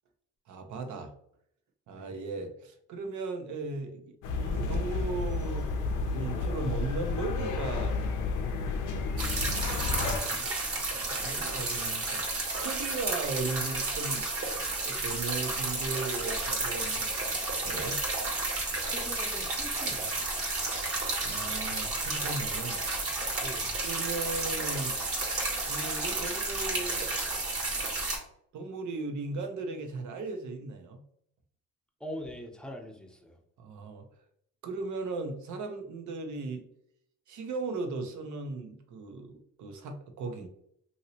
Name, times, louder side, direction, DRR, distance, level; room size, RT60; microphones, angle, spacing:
voice 1, 0.5-1.1 1.9-7.9 10.3-18.0 21.2-22.8 23.8-25.0 25.6-27.2 28.5-31.0 33.6-34.1 34.6-36.6 37.3-40.5, right 3 dB, 70° right, 5 dB, 0.7 m, -37 dB
sound 1, 4.2-10.2, left 4 dB, 80° left, 0.5 m, -31 dB
sound 2, 9.2-28.2, right 2 dB, 50° right, 1.1 m, -32 dB
voice 2, 18.8-20.2 23.4-23.8 32.0-33.4, equal, 5° left, 1 dB, 0.6 m, -42 dB
2.9 x 2.7 x 2.8 m, 0.69 s
cardioid pair, 90°, 30 cm